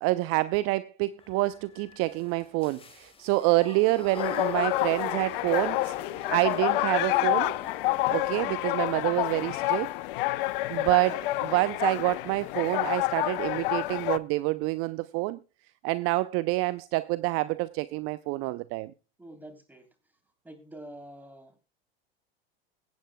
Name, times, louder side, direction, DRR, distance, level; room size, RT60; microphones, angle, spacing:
voice 1, 0.0-5.9 6.3-7.5 8.1-9.9 10.7-15.4 15.8-18.9, right 20 dB, 50° right, 0.5 m, -27 dB
sound 1, 1.2-8.5 10.1-10.2 10.4-10.7, left 4 dB, 20° left, 1.6 m, -42 dB
sound 2, 4.2-14.2, left 18 dB, 65° left, 0.6 m, -28 dB
voice 2, 19.2-19.9 20.4-21.6, right 1 dB, 5° right, 3.2 m, -46 dB
22.5 x 8.9 x 2.2 m
hypercardioid pair, 95°, 29 cm